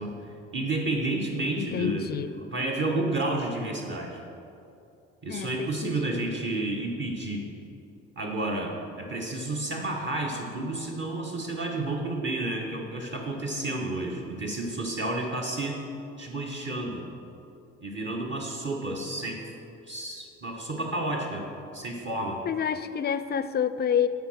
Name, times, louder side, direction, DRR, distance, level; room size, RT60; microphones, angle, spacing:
voice 1, 0.0-4.2 5.2-7.5 8.2-15.8 16.2-17.1 17.8-19.4 19.9-22.4, right 2 dB, 40° right, -1 dB, 1.3 m, -31 dB
voice 2, 1.6-2.3 5.3-6.2 22.4-24.1, left 8 dB, 35° left, 13 dB, 0.4 m, -28 dB
8.0 x 4.8 x 6.4 m, 2.7 s
hypercardioid pair, 60°, 30 cm